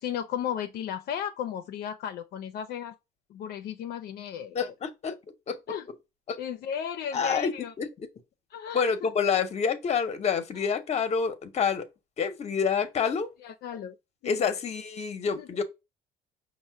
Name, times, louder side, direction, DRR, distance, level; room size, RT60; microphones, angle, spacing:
voice 1, 0.0-2.9 3.3-4.6 5.7-5.9 6.4-7.7 8.5-9.1 10.6-10.7 13.4-14.0 14.2-14.5 15.4-15.5, left 9 dB, 70° left, 0.5 m, -35 dB
voice 2, 4.5-5.2 5.5-5.6 6.3-6.4 7.1-8.1 8.7-11.9 12.2-13.3 14.2-15.6, left 6 dB, 40° left, 0.8 m, -28 dB
5.3 x 2.1 x 4.5 m
cardioid pair, 110°, 17 cm